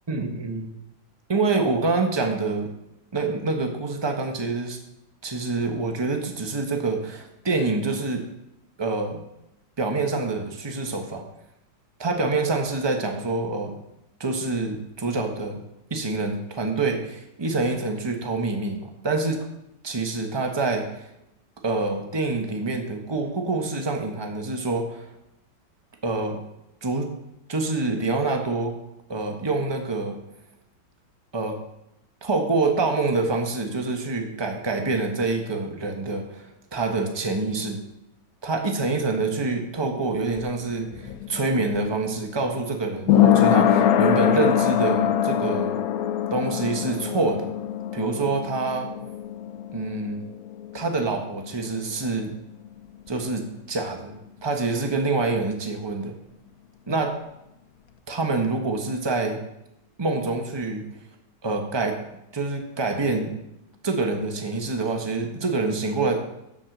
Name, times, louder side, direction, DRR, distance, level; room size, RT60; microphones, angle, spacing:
voice 1, 0.1-0.7 1.3-2.7 3.1-4.8 5.2-8.2 8.8-9.2 9.8-11.2 12.0-13.8 14.2-15.6 15.9-19.5 19.8-21.1 21.6-25.1 26.0-26.4 26.8-27.1 27.5-28.7 29.1-30.2 31.3-31.6 32.2-37.8 38.4-45.8 46.3-47.5 47.9-48.9 49.7-50.3 50.7-52.3 53.1-56.1 56.9-57.2 58.1-59.4 60.0-60.9 61.4-62.0 62.3-63.4 63.8-66.2, right 3 dB, 20° right, 4 dB, 0.9 m, -26 dB
sound 1, 40.0-51.5 51.8-51.9, left 10 dB, 65° left, 0.9 m, -23 dB
7.7 x 7.5 x 6.5 m, 0.85 s
omnidirectional pair, 2.1 m